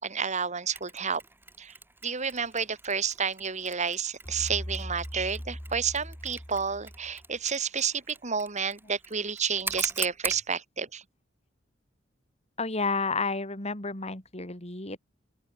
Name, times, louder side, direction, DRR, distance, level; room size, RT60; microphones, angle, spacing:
voice 1, 0.0-1.2 1.6-1.8 2.0-11.0, right 6 dB, 40° right, 3.0 m, -30 dB
Mechanisms, 0.8-10.5, right 3 dB, 10° right, 5.8 m, -41 dB
sound 1, 4.2-7.4, equal, 15° left, 4.6 m, -40 dB
voice 2, 12.6-15.0, left 4 dB, 35° left, 4.3 m, -31 dB
open air
head